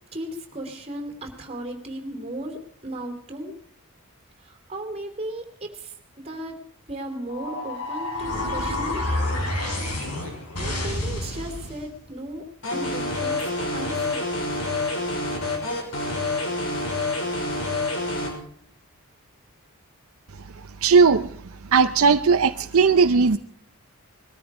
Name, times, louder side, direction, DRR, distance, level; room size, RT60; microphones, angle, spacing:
voice 1, 0.1-3.6 4.4-9.1 10.2-14.3, right 1 dB, 25° right, 4 dB, 3.1 m, -36 dB
sound 1, 7.3-11.9, left 1 dB, 90° left, 5.9 m, -29 dB
sound 2, 12.6-18.3, left 2 dB, 65° left, 5.7 m, -27 dB
voice 2, 20.8-21.3 21.7-23.4, right 5 dB, 70° right, 10 dB, 0.6 m, -17 dB
21.0 x 13.5 x 4.8 m, 0.63 s
head